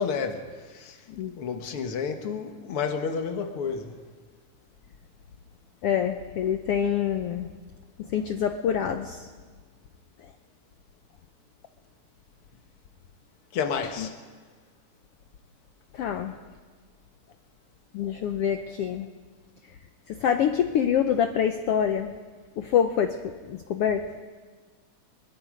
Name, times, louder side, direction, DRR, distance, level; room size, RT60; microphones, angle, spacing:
voice 1, 0.0-1.0 1.4-4.0 13.5-14.2, left 6 dB, 50° left, 2.1 m, -30 dB
voice 2, 5.8-7.5 8.0-9.3 14.0-14.1 15.9-16.4 17.9-19.1 20.1-22.1 22.6-24.1, left 8 dB, 90° left, 1.3 m, -26 dB
23.0 x 22.5 x 5.2 m
omnidirectional pair, 3.7 m